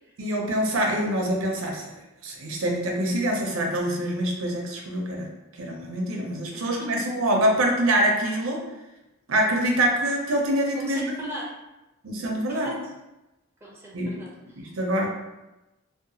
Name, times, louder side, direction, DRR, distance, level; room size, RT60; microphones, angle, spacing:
voice 1, 0.2-1.9 2.2-5.3 5.6-8.6 9.3-11.1 12.0-12.7 13.9-14.2 14.6-15.1, right 1 dB, 75° right, 0 dB, 0.5 m, -25 dB
voice 2, 6.5-7.1 10.7-11.5 12.5-12.8 13.6-14.8, equal, 10° right, -4 dB, 0.4 m, -39 dB
2.7 x 2.1 x 2.6 m, 0.99 s
head